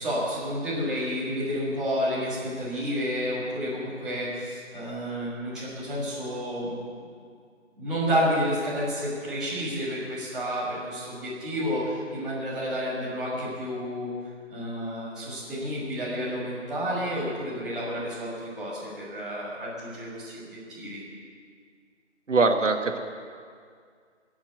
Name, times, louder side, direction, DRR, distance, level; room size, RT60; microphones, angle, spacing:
voice 1, 0.0-6.9 7.8-14.1 14.5-21.0, equal, ahead, -14 dB, 1.6 m, -30 dB
voice 2, 22.3-23.0, right 3 dB, 80° right, 5 dB, 1.6 m, -22 dB
20.5 x 7.2 x 7.9 m, 2.1 s
figure-of-eight pair, 170°, 37 cm